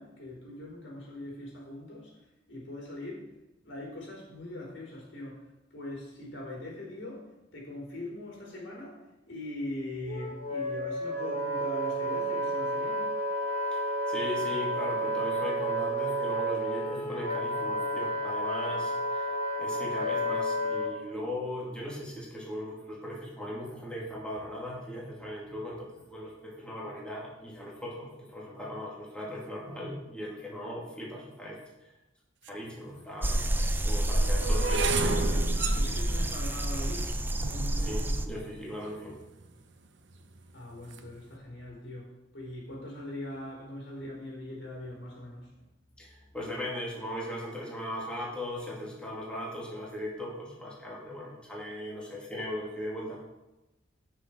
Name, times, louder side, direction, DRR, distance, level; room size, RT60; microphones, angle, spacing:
voice 1, 0.0-2.1 2.5-3.3 3.6-13.1 35.2-37.1 40.5-45.6, left 1 dB, 75° left, -2 dB, 4.2 m, -41 dB
Wind instrument woodwind instrument, 10.1-20.9, right 1 dB, 35° left, 2.1 m, -31 dB
voice 2, 14.1-19.3 19.6-31.9 32.5-33.5 33.8-34.9 37.6-39.2 46.0-53.2, left 1 dB, 5° left, -5 dB, 2.6 m, -38 dB
sound 1, 32.5-32.6 33.3-39.5 40.1-40.5 40.8-41.1, right 3 dB, 65° right, 1.0 m, -35 dB
sound 2, 33.2-38.3, right 1 dB, 10° right, 0.6 m, -28 dB
17.5 x 6.5 x 4.6 m, 0.97 s
head